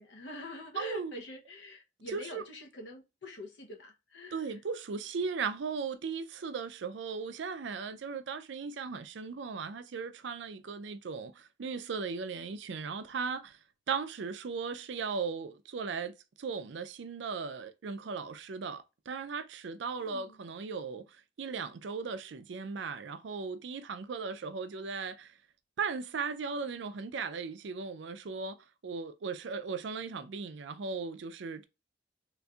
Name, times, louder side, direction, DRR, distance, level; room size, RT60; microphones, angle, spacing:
voice 1, 0.0-4.6 20.0-20.4, left 1 dB, 80° left, 0.8 m, -45 dB
voice 2, 0.8-1.1 2.1-2.4 4.3-13.6 13.9-21.0 21.4-25.3 25.8-28.6 28.8-31.6, right 5 dB, 80° right, 0.4 m, -37 dB
4.0 x 2.5 x 2.3 m
head